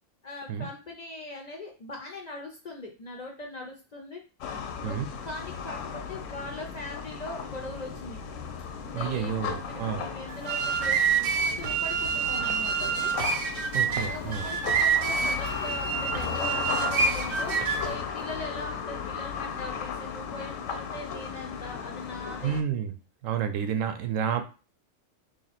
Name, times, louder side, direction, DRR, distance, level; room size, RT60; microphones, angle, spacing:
voice 1, 0.2-4.2 4.8-8.2 8.9-13.1 14.0-22.6, left 2 dB, 50° left, 1 dB, 0.5 m, -41 dB
sound 1, 4.4-22.6, left 6 dB, 90° left, 1.0 m, -36 dB
voice 2, 8.9-10.1 13.7-14.5 22.4-22.9 23.2-24.4, right 8 dB, 90° right, 8 dB, 1.0 m, -30 dB
sound 2, 10.3-17.9, right 6 dB, 60° right, 0.7 m, -27 dB
3.0 x 2.7 x 4.1 m, 0.33 s
omnidirectional pair, 1.3 m